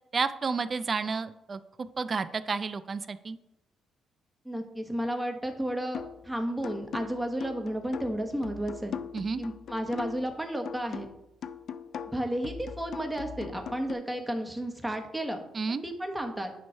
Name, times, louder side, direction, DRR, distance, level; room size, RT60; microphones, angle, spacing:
voice 1, 0.1-1.6 2.0-3.4 9.1-9.4 15.5-15.8, right 4 dB, 40° right, 13 dB, 0.5 m, -31 dB
voice 2, 4.4-9.0 9.4-11.1 12.1-15.4 15.7-16.6, right 1 dB, 10° right, 3 dB, 1.2 m, -32 dB
sound 1, 5.9-6.3 6.6-10.3 10.7-13.9, left 7 dB, 65° left, 0.4 m, -40 dB
9.2 x 3.1 x 5.6 m, 0.89 s
cardioid pair, 90°, 0 cm